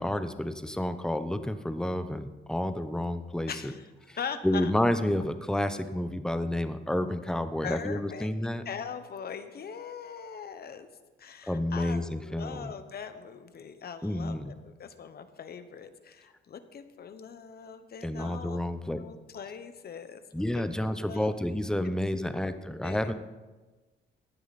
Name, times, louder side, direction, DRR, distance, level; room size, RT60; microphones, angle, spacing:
voice 1, 0.0-3.7 4.1-4.2 4.4-8.6 11.5-12.7 14.0-14.5 18.0-19.0 20.3-23.1, left 1 dB, 5° left, 10 dB, 0.8 m, -30 dB
voice 2, 3.5-3.8 4.2-4.7 7.6-8.3 8.6-10.9 11.2-18.6 18.9-20.2 20.6-21.3 22.3-23.1, left 7 dB, 50° left, 10 dB, 1.1 m, -41 dB
16.0 x 10.0 x 4.2 m, 1.3 s
cardioid pair, 90°, 20 cm